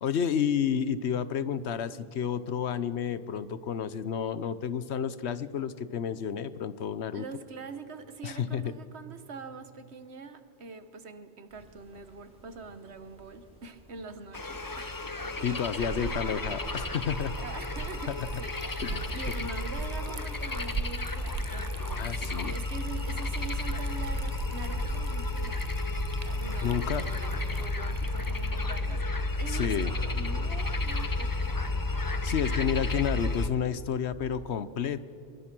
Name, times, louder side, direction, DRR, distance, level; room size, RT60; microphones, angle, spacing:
voice 1, 0.0-7.3 8.2-8.7 15.4-17.4 18.1-18.3 18.8-19.1 22.0-22.6 26.6-27.1 29.5-29.9 32.2-35.0, left 8 dB, 75° left, 15 dB, 1.1 m, -30 dB
voice 2, 7.1-14.9 15.4-16.1 17.4-29.1 29.4-31.9, right 4 dB, 70° right, 10 dB, 1.5 m, -44 dB
sound 1, 11.5-19.6, left 1 dB, 5° right, 4.4 m, -53 dB
sound 2, 14.3-33.5, left 2 dB, 20° left, 0.8 m, -32 dB
Liquid, 15.3-31.4, right 4 dB, 40° right, 0.9 m, -40 dB
24.0 x 22.5 x 6.1 m, 2.5 s
omnidirectional pair, 1.2 m